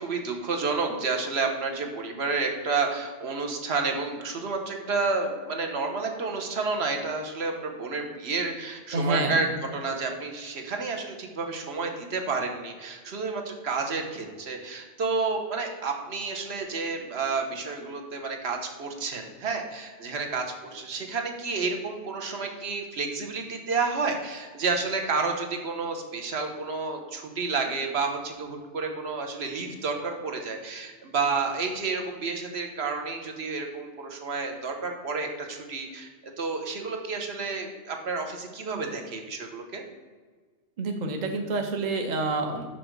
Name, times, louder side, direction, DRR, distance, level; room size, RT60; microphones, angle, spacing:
voice 1, 0.0-36.1 36.4-39.8, right 4 dB, 65° right, 4 dB, 1.2 m, -30 dB
voice 2, 8.9-9.4 40.8-42.7, right 2 dB, 45° right, 4 dB, 0.7 m, -28 dB
6.3 x 6.1 x 4.6 m, 1.5 s
omnidirectional pair, 1.2 m